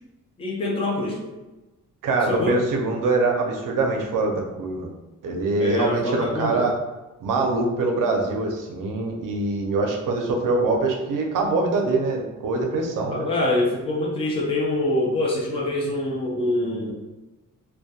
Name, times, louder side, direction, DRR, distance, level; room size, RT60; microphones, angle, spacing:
voice 1, 0.4-1.2 2.3-2.6 5.6-6.6 13.1-16.9, left 2 dB, 20° left, -2 dB, 0.3 m, -24 dB
voice 2, 2.0-4.9 5.2-6.8 7.2-13.3, right 3 dB, 70° right, 1 dB, 0.5 m, -24 dB
2.2 x 2.2 x 2.7 m, 1.1 s
wide cardioid pair, 155°, 33 cm